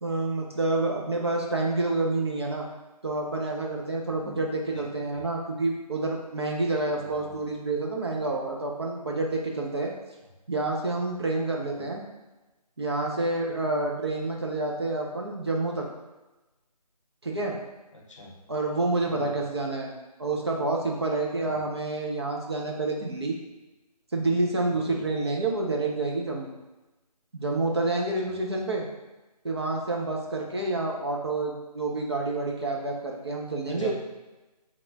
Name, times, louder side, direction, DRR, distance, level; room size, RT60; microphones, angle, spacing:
voice 1, 0.0-2.6 3.0-9.9 10.5-12.0 12.8-15.9 17.2-17.6 18.5-19.9 20.2-23.4 24.1-26.5 27.3-28.8 29.4-33.9, right 2 dB, 40° right, -1 dB, 0.5 m, -28 dB
voice 2, 6.9-7.4 11.8-11.9 17.9-18.3 19.1-19.3 21.4-21.6 24.7-24.9 28.2-28.3 33.7-33.9, equal, 50° left, -1 dB, 0.7 m, -42 dB
2.9 x 2.3 x 3.9 m, 1.1 s
figure-of-eight pair, 155°, 20 cm